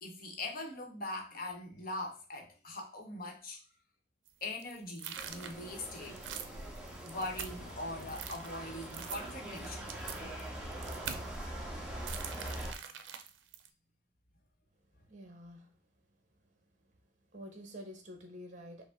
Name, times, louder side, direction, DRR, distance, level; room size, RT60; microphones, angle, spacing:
voice 1, 0.0-3.6 4.4-6.2 7.0-9.9, left 2 dB, 50° left, 0.9 m, -42 dB
sound 1, 4.3-7.7 8.0-11.4 12.1-13.7, right 8 dB, 85° right, 0.5 m, -44 dB
sound 2, 5.1-12.7, right 1 dB, 5° right, 0.8 m, -43 dB
voice 2, 15.1-15.7 17.3-18.9, equal, 40° right, 0.9 m, -48 dB
5.1 x 2.1 x 3.5 m
head